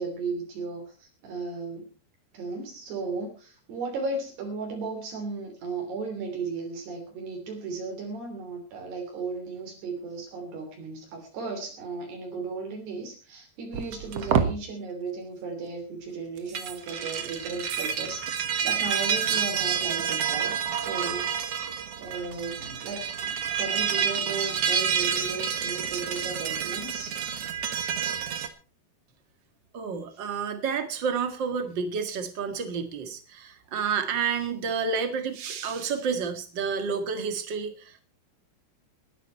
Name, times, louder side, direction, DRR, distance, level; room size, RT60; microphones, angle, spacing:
voice 1, 0.0-1.9 2.3-21.3 21.7-27.2, right 4 dB, 70° right, 1 dB, 5.1 m, -35 dB
sound 1, 13.7-14.5 16.4-28.5, right 7 dB, 90° right, 1.3 m, -28 dB
voice 2, 29.7-38.0, right 6 dB, 45° right, 7 dB, 1.4 m, -30 dB
20.5 x 11.0 x 4.4 m, 0.37 s
omnidirectional pair, 4.9 m